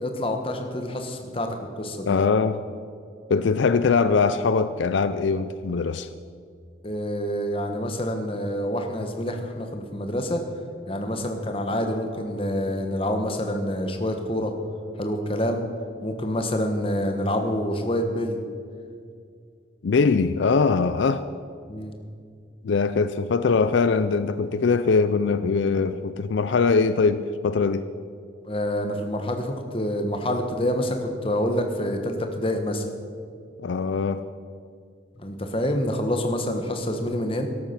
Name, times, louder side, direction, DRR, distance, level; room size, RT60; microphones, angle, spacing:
voice 1, 0.0-2.1 6.8-10.5 10.9-14.5 15.0-15.6 16.0-18.4 21.7-21.9 28.4-32.8 35.2-37.5, left 1 dB, 30° left, 5 dB, 1.2 m, -27 dB
voice 2, 2.1-2.6 3.3-6.1 19.8-21.3 22.6-27.9 33.6-34.2, left 4 dB, 75° left, 13 dB, 0.4 m, -22 dB
13.5 x 12.0 x 5.9 m, 2.3 s
head